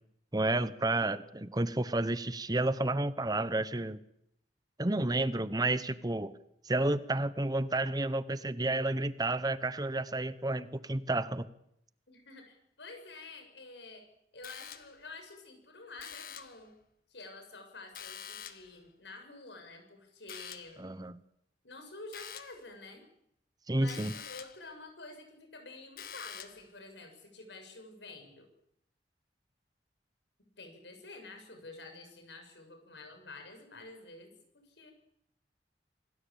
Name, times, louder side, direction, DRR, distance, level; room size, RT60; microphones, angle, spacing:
voice 1, 0.3-4.0 4.8-6.3 6.6-11.4 20.8-21.2 23.7-24.1, right 2 dB, 20° right, 15 dB, 0.9 m, -31 dB
voice 2, 12.1-14.0 14.3-16.7 17.1-20.8 21.6-23.0 23.7-28.5 30.4-34.9, left 3 dB, 85° left, 5 dB, 6.9 m, -49 dB
sound 1, 14.4-15.1 16.0-16.7 17.9-18.8 20.3-20.8 22.1-22.6 23.9-24.7 26.0-26.7, left 9 dB, 55° left, 1.6 m, -46 dB
26.5 x 18.5 x 8.8 m, 0.75 s
head